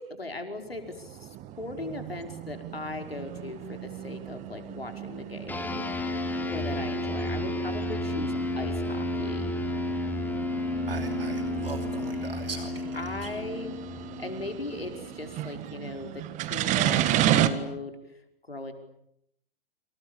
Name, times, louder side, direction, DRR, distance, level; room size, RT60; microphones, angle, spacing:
voice 1, 0.0-5.8 6.5-9.6 12.9-13.7 14.2-18.0 18.5-18.7, left 2 dB, 85° left, 5 dB, 5.2 m, -38 dB
sound 1, 0.6-17.5, right 12 dB, 25° right, 1.7 m, -33 dB
sound 2, 5.5-15.2, left 2 dB, 5° left, 3.3 m, -32 dB
voice 2, 10.9-12.9 13.2-13.3, right 4 dB, 75° right, 6 dB, 2.9 m, -39 dB
29.0 x 27.0 x 7.2 m, 0.75 s
figure-of-eight pair, 115°, 29 cm